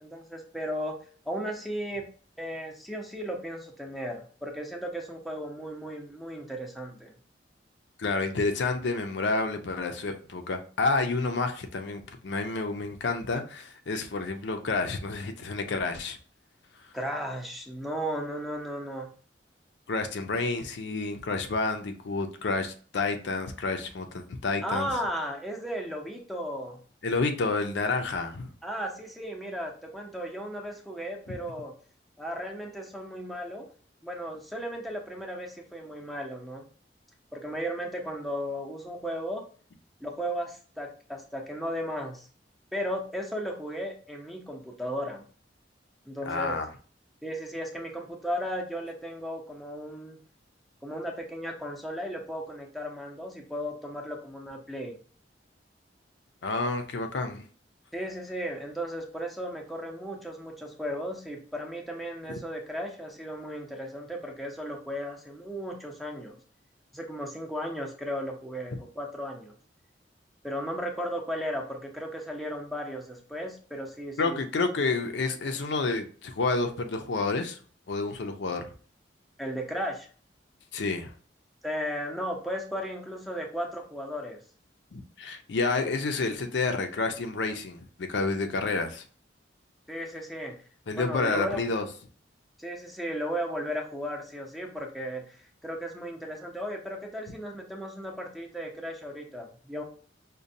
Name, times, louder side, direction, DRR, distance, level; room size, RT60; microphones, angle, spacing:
voice 1, 0.0-0.9 1.3-2.1 2.4-7.1 16.9-19.1 24.6-26.8 28.6-31.7 32.2-33.7 34.0-36.7 37.3-39.4 40.0-42.3 42.7-45.2 46.1-46.6 47.2-50.2 50.8-55.0 57.9-66.4 66.9-69.5 70.4-74.4 79.4-80.1 81.6-84.4 89.9-90.5 90.9-91.6 92.6-95.2 95.6-99.8, equal, ahead, 0.6 m, -35 dB
voice 2, 8.0-16.2 19.9-24.9 27.0-28.5 31.3-31.4 46.3-46.7 56.4-57.5 74.2-77.6 77.9-78.7 80.7-81.1 84.9-89.0 90.9-91.9, left 3 dB, 75° left, 0.5 m, -29 dB
5.1 x 2.2 x 2.6 m
head